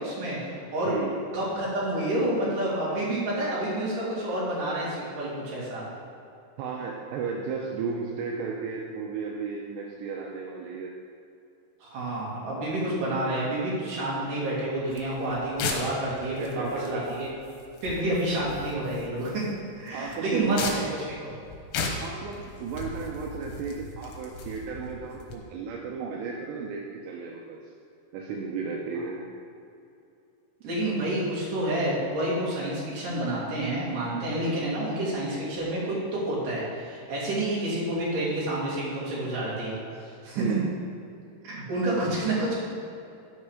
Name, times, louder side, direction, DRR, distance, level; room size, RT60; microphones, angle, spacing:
voice 1, 0.0-0.9 1.3-5.8 11.8-17.3 17.8-19.4 19.8-21.4 30.6-40.4 41.4-42.5, right 1 dB, 50° right, -6 dB, 3.5 m, -29 dB
voice 2, 0.8-1.2 6.6-11.0 16.4-17.0 19.9-20.8 22.0-27.6 28.1-29.2 40.4-40.7, right 5 dB, 80° right, -1 dB, 2.6 m, -34 dB
sound 1, 14.9-25.4, left 4 dB, 75° left, 3.3 m, -37 dB
13.0 x 5.5 x 4.8 m, 2.6 s
omnidirectional pair, 5.5 m